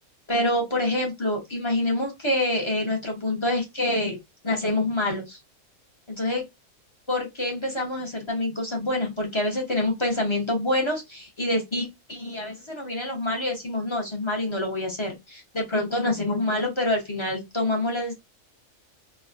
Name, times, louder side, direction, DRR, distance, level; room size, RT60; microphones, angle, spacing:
voice 1, 0.3-4.2 4.4-5.4 6.1-6.4 7.1-18.1, left 1 dB, 30° left, 0.7 m, -26 dB
3.2 x 2.1 x 2.4 m
omnidirectional pair, 1.4 m